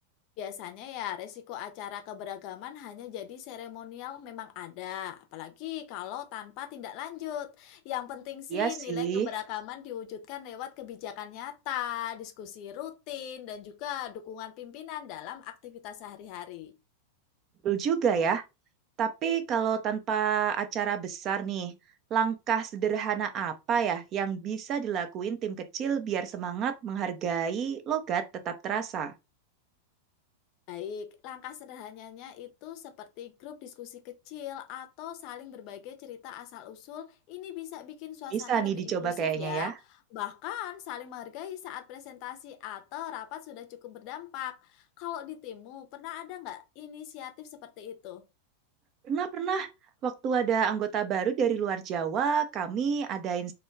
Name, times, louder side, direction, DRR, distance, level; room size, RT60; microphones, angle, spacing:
voice 1, 0.4-16.7 30.7-48.2, left 11 dB, 45° left, 0.5 m, -40 dB
voice 2, 8.5-9.3 17.6-18.4 19.0-21.8 22.1-29.1 38.3-39.7 49.0-49.7 50.0-53.5, right 7 dB, 35° right, 0.4 m, -29 dB
2.2 x 2.2 x 3.3 m
figure-of-eight pair, 90°, 0 cm